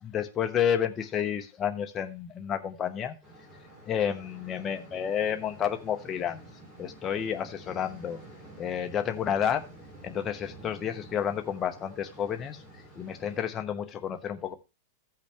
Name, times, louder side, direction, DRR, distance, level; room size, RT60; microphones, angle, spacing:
voice 1, 0.0-3.1 3.9-6.4 6.8-8.2 8.6-9.6 10.0-12.6 13.0-14.5, left 8 dB, 20° left, 6 dB, 0.9 m, -30 dB
sound 1, 3.2-13.5, right 1 dB, 10° right, 3.2 m, -50 dB
15.0 x 5.8 x 3.4 m, 0.28 s
supercardioid pair, 155°, 0 cm